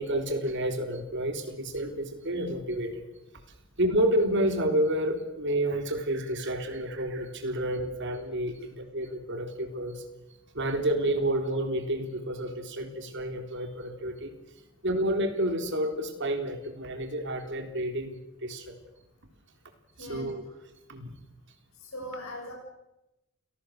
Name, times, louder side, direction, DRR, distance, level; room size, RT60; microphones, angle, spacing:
voice 1, 0.0-3.0 3.8-10.0 10.5-14.3 14.8-18.8 20.0-20.4 20.9-21.1, right 1 dB, 55° right, 6 dB, 3.7 m, -30 dB
voice 2, 20.0-20.3 21.8-22.5, left 1 dB, 75° left, 0 dB, 7.3 m, -39 dB
29.5 x 18.5 x 6.7 m, 0.94 s
head